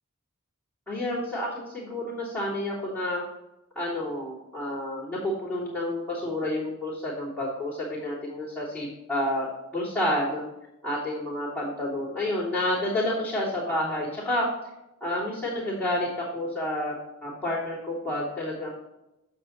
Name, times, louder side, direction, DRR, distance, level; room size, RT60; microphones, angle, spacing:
voice 1, 0.9-3.2 3.7-9.5 9.7-10.4 10.8-14.4 15.0-16.9 17.2-18.7, left 1 dB, 5° left, -13 dB, 3.3 m, -29 dB
9.0 x 7.6 x 3.2 m, 0.90 s
head